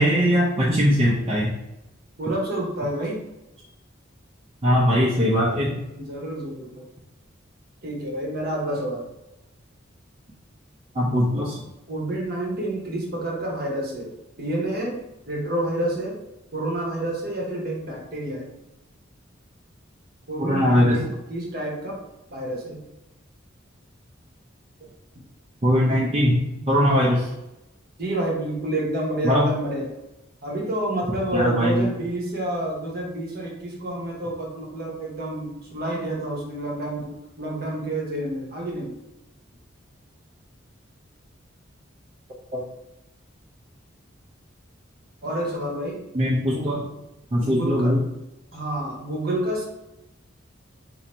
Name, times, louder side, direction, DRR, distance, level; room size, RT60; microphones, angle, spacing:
voice 1, 0.0-1.5 4.6-5.8 10.9-11.6 20.4-21.0 25.6-26.4 26.7-27.2 29.2-29.5 31.3-31.9 42.5-42.6 46.1-46.8 47.3-48.0, equal, 30° right, -6 dB, 0.6 m, -20 dB
voice 2, 2.2-3.2 5.9-6.8 7.8-9.0 11.9-14.1 14.4-15.0 15.3-16.2 16.5-18.5 20.3-22.0 22.3-22.8 26.5-26.6 26.9-27.1 28.0-29.9 30.4-38.9 45.2-46.0 46.5-46.7 47.4-47.9 48.5-49.6, right 1 dB, 50° right, -2 dB, 1.0 m, -29 dB
2.7 x 2.6 x 4.3 m, 0.94 s
head